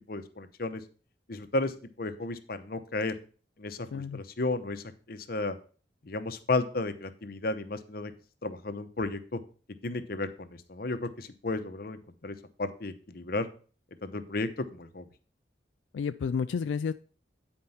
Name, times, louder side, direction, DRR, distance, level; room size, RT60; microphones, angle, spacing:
voice 1, 0.1-0.8 1.3-3.1 3.6-5.6 6.0-8.1 8.4-9.4 9.8-13.5 14.0-15.1, left 2 dB, 55° left, 10 dB, 0.8 m, -33 dB
voice 2, 3.9-4.2 15.9-16.9, left 6 dB, 85° left, 11 dB, 0.3 m, -31 dB
9.3 x 4.4 x 5.6 m, 0.39 s
head